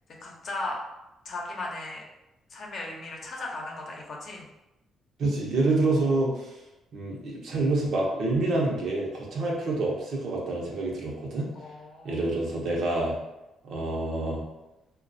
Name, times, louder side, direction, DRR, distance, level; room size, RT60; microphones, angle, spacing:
voice 1, 0.2-0.8 1.2-2.0 2.5-4.5 11.5-12.3, left 2 dB, 55° left, -1 dB, 0.7 m, -36 dB
voice 2, 5.2-6.6 6.9-11.5 12.0-13.1 13.6-14.4, right 2 dB, 70° right, -2 dB, 0.8 m, -27 dB
3.1 x 2.3 x 2.6 m, 0.97 s
cardioid pair, 90°, 0 cm